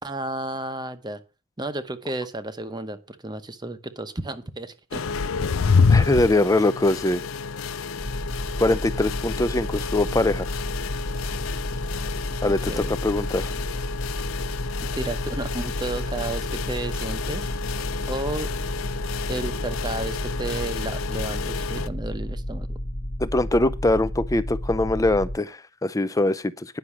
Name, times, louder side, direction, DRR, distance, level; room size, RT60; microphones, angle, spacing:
voice 1, 0.0-1.2 1.6-5.0 12.4-12.9 14.9-17.5 18.1-18.5 19.3-22.8, right 2 dB, 20° right, 0.9 m, -32 dB
sound 1, 4.9-21.9, left 5 dB, 80° left, 0.6 m, -28 dB
voice 2, 5.9-7.2 8.6-10.5 12.4-13.5 23.2-26.8, left 2 dB, 15° left, 0.5 m, -22 dB
sound 2, 8.0-25.4, equal, 50° left, 1.2 m, -32 dB
10.0 x 6.2 x 7.3 m
head